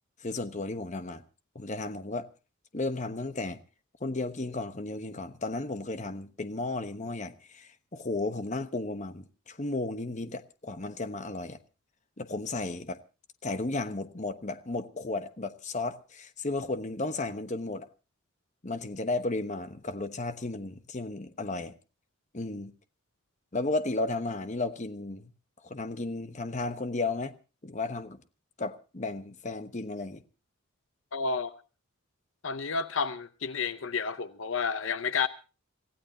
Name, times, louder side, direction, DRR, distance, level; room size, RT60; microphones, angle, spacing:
voice 1, 0.2-1.2 1.5-2.3 2.7-3.6 4.0-11.6 12.2-13.0 13.4-17.9 18.6-21.7 22.3-22.7 23.5-25.3 25.6-27.3 27.6-28.2 28.6-30.2, left 2 dB, 35° left, 1.1 m, -34 dB
voice 2, 31.1-31.5 32.4-35.3, left 5 dB, 65° left, 0.7 m, -30 dB
27.5 x 15.5 x 2.8 m
head